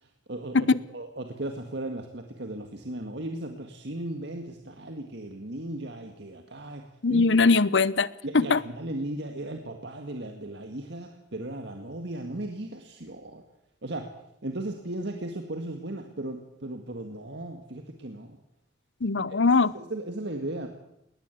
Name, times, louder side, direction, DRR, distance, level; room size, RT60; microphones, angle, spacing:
voice 1, 0.0-0.7 0.9-6.8 7.1-7.3 8.2-13.4 13.8-14.1 14.4-18.4 19.3-19.4 19.7-20.7, right 1 dB, 65° right, 5 dB, 2.0 m, -36 dB
voice 2, 7.0-8.1 8.3-8.6 19.0-19.7, left 4 dB, 70° left, 19 dB, 0.8 m, -21 dB
20.5 x 19.0 x 8.4 m, 0.81 s
head